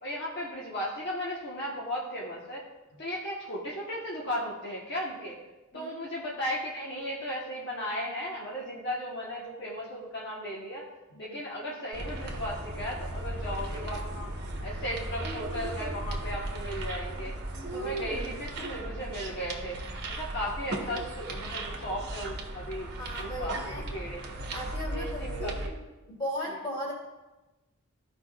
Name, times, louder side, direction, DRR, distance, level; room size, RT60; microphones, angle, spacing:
voice 1, 0.0-2.6 3.0-5.4 5.7-10.8 11.2-14.3 14.6-17.3 17.7-19.8 20.1-23.6 23.9-24.2 24.9-25.7, equal, 50° left, -4 dB, 1.1 m, -36 dB
sound 1, 11.9-25.7, right 1 dB, 50° right, 1.1 m, -36 dB
voice 2, 23.0-23.9 24.5-25.7 26.1-26.9, equal, 20° left, -4 dB, 2.1 m, -37 dB
14.0 x 5.0 x 2.3 m, 1.1 s
head